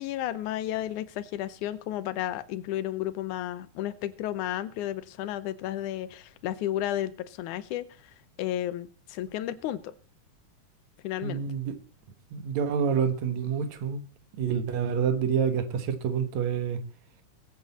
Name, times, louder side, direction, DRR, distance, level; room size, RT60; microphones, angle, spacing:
voice 1, 0.0-7.9 8.4-9.9 11.0-11.4, left 13 dB, 85° left, 2.3 m, -32 dB
voice 2, 11.2-11.7 12.3-14.1 14.4-16.8, right 7 dB, 70° right, 2.5 m, -28 dB
21.0 x 8.7 x 4.2 m
omnidirectional pair, 3.4 m